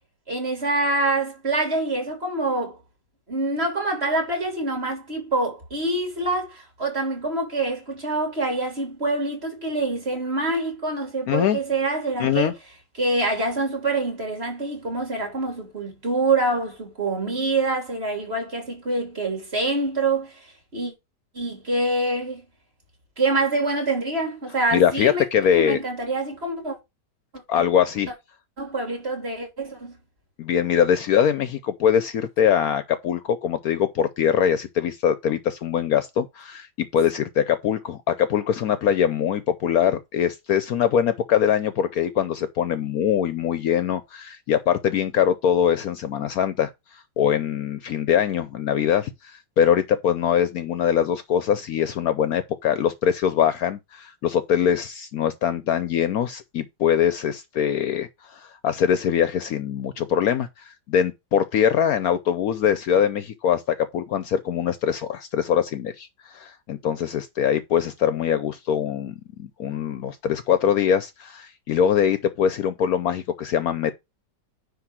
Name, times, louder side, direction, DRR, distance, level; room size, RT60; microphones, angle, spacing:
voice 1, 0.3-2.8 3.3-12.5 13.0-20.4 20.7-20.9 21.3-22.5 23.2-25.2 25.5-26.8 27.6-27.7 28.6-30.0, right 2 dB, 35° right, 3.4 m, -25 dB
voice 2, 11.3-11.6 12.2-12.5 24.7-25.8 27.5-28.1 30.4-73.9, left 8 dB, 65° left, 1.0 m, -23 dB
9.8 x 3.4 x 6.0 m
omnidirectional pair, 1.8 m